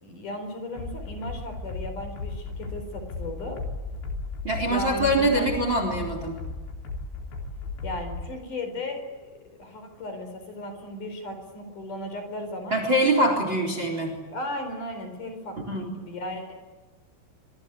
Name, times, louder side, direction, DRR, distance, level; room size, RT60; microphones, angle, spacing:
voice 1, 0.0-3.6 4.7-5.6 7.8-9.1 9.6-12.8 14.3-16.5, left 1 dB, 40° left, 6 dB, 5.7 m, -35 dB
sound 1, 0.8-8.3, left 3 dB, 60° left, 5.5 m, -36 dB
voice 2, 4.4-6.4 12.7-14.2 15.7-15.9, right 1 dB, 25° right, 6 dB, 4.1 m, -24 dB
26.0 x 25.0 x 8.4 m, 1.2 s
omnidirectional pair, 5.8 m